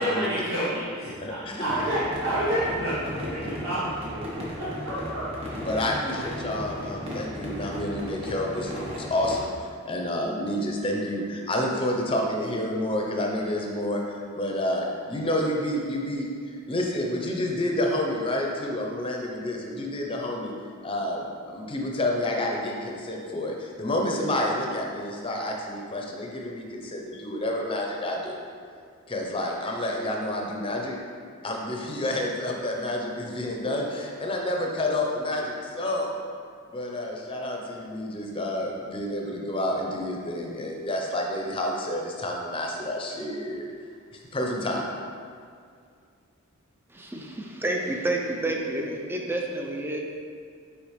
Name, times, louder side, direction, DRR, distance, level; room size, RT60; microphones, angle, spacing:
voice 1, 0.0-5.8 6.4-6.6, right 1 dB, 70° right, -11 dB, 1.5 m, -30 dB
sound 1, 1.6-9.5, left 1 dB, 30° right, 1.2 m, -36 dB
voice 2, 5.6-20.5 20.8-28.3 29.1-31.0 31.4-36.1 36.7-43.6 44.1-44.9, left 1 dB, 25° left, 0 dB, 0.7 m, -29 dB
voice 3, 46.9-50.0, right 1 dB, 10° right, 0 dB, 0.5 m, -29 dB
6.8 x 5.0 x 3.2 m, 2.2 s
head